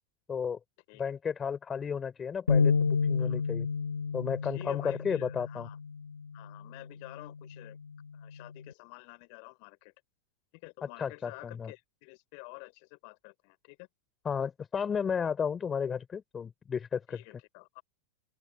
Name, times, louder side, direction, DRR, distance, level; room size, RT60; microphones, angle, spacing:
voice 1, 0.3-0.6 1.0-3.7 4.1-5.7 11.0-11.7 14.2-17.2, left 6 dB, 20° left, 3.9 m, -33 dB
sound 1, 2.5-8.7, left 5 dB, 75° left, 1.2 m, -31 dB
voice 2, 4.4-5.8 6.3-7.8 8.1-9.9 10.5-13.9 17.1-17.8, left 40 dB or more, 45° left, 5.4 m, -50 dB
open air
figure-of-eight pair, 90°, 0 cm